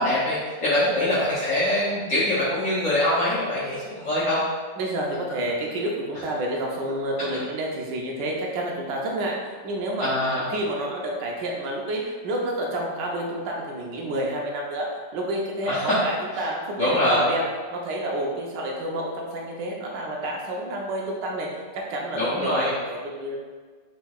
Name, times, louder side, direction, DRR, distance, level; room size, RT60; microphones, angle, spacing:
voice 1, 0.0-4.4 10.0-10.5 15.7-15.9 16.3-16.4 16.8-17.3 22.1-22.7, left 1 dB, 55° left, -9 dB, 1.0 m, -23 dB
voice 2, 4.8-9.3 9.6-10.1 10.5-14.9 15.1-17.5 17.7-23.4, right 1 dB, 75° right, -1 dB, 1.4 m, -29 dB
4.4 x 3.9 x 2.3 m, 1.5 s
omnidirectional pair, 1.9 m